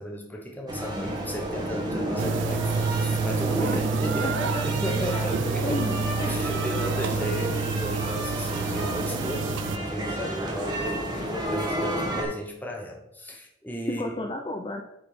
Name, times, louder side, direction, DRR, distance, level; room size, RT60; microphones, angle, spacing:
voice 1, 0.0-5.8 6.2-14.0, equal, 10° left, 1 dB, 1.0 m, -34 dB
sound 1, 0.7-12.2, right 1 dB, 20° right, 1.6 m, -31 dB
sound 2, 2.2-9.8, right 6 dB, 60° right, 0.3 m, -29 dB
voice 2, 4.2-5.4 5.6-6.3 14.0-14.8, left 1 dB, 25° left, 2 dB, 0.6 m, -33 dB
9.2 x 4.1 x 5.2 m, 0.84 s
head